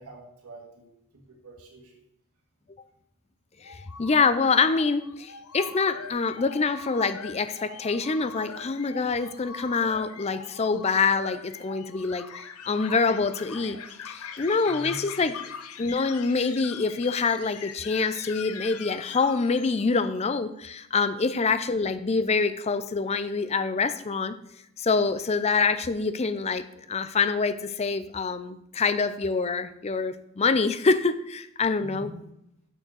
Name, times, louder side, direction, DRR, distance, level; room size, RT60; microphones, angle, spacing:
voice 1, 0.0-2.0 14.6-15.0 31.8-32.2, right 1 dB, 80° right, 1 dB, 1.7 m, -45 dB
sound 1, 3.6-20.2, left 6 dB, 75° left, 0.6 m, -42 dB
voice 2, 3.6-12.3 12.7-13.8 14.0-15.4 15.8-24.3 24.8-26.6 26.9-32.1, left 4 dB, 30° left, 12 dB, 0.5 m, -25 dB
6.6 x 6.1 x 6.2 m, 0.80 s
head